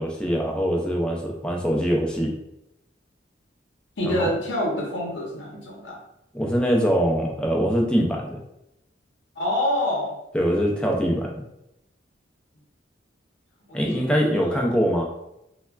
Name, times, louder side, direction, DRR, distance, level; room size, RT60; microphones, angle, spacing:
voice 1, 0.0-2.3 4.0-4.3 6.3-8.4 10.3-11.4 13.7-15.0, equal, 5° left, -1 dB, 0.4 m, -23 dB
voice 2, 4.0-6.0 9.4-10.2 13.7-14.7, left 1 dB, 80° left, -2 dB, 0.7 m, -27 dB
3.3 x 2.1 x 2.2 m, 0.84 s
head